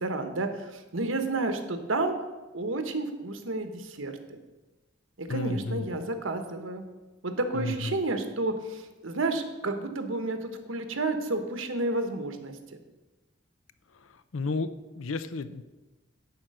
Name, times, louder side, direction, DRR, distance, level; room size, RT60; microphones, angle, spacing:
voice 1, 0.0-2.2 2.5-4.4 5.2-6.8 7.2-12.8, right 2 dB, 85° right, 7 dB, 1.2 m, -31 dB
voice 2, 5.3-5.9 7.5-8.0 14.3-14.7 15.0-15.6, left 3 dB, 85° left, 13 dB, 0.6 m, -32 dB
11.0 x 4.5 x 7.7 m, 1.1 s
head